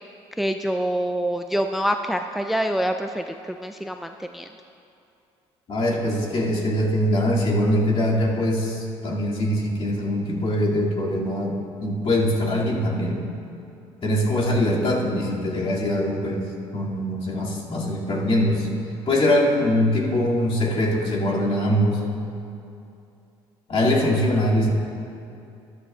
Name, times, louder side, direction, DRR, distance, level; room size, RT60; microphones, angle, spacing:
voice 1, 0.4-4.5, equal, ahead, 6 dB, 0.4 m, -26 dB
voice 2, 5.7-13.3 14.0-16.4 16.7-18.7 19.1-22.0 23.7-24.7, left 1 dB, 45° left, -4 dB, 2.4 m, -22 dB
13.0 x 11.5 x 2.4 m, 2.7 s
supercardioid pair, 65°, 13 cm